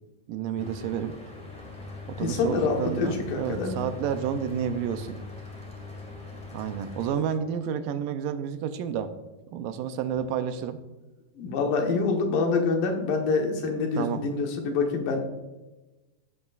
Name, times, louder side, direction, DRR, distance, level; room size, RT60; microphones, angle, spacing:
voice 1, 0.3-1.1 2.1-5.2 6.5-9.1 9.5-10.8 14.0-14.2, right 8 dB, 80° right, 9 dB, 2.2 m, -30 dB
Mechanical fan, 0.6-7.1, left 3 dB, 10° left, 0.3 m, -41 dB
voice 2, 2.2-3.8 11.4-15.2, left 4 dB, 80° left, 2 dB, 2.8 m, -26 dB
14.0 x 8.0 x 2.4 m, 1.1 s
omnidirectional pair, 4.0 m